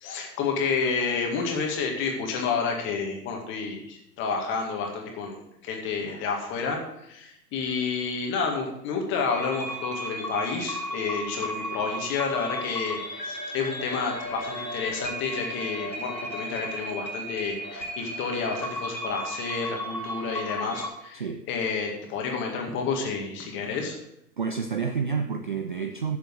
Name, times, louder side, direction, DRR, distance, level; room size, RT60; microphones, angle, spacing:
voice 1, 0.0-24.0, left 5 dB, 25° left, 2 dB, 2.0 m, -30 dB
sound 1, 9.3-20.9, equal, 90° left, 2.8 m, -35 dB
voice 2, 24.4-26.2, right 6 dB, 35° right, 8 dB, 0.4 m, -29 dB
10.5 x 7.0 x 6.3 m, 0.81 s
figure-of-eight pair, 110°, 49 cm